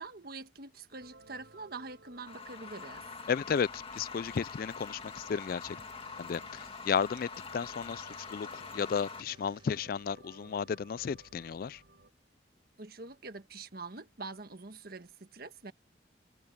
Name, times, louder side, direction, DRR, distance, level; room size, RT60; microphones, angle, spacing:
voice 1, 0.0-3.1 12.8-15.7, right 3 dB, 55° right, 1.5 m, -45 dB
sound 1, 1.0-12.1, right 2 dB, 80° right, 4.8 m, -59 dB
sound 2, 2.3-9.2, left 5 dB, 30° left, 1.8 m, -45 dB
voice 2, 3.3-5.8 6.2-11.8, left 6 dB, 50° left, 0.3 m, -33 dB
sound 3, 4.8-9.8, right 4 dB, 30° right, 4.2 m, -64 dB
head